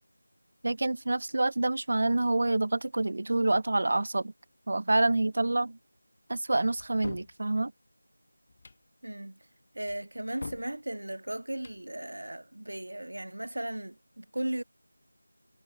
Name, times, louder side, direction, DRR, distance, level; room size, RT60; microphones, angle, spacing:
voice 1, 0.6-4.3 4.7-5.8 6.3-7.7, right 2 dB, 45° right, 0.4 m, -27 dB
sound 1, 6.8-7.3 8.5-8.8 9.9-10.7 11.5-11.8, left 3 dB, 30° left, 1.0 m, -44 dB
voice 2, 9.0-9.4 9.7-14.6, right 1 dB, 65° right, 1.7 m, -36 dB
figure-of-eight pair, 170°, 0 cm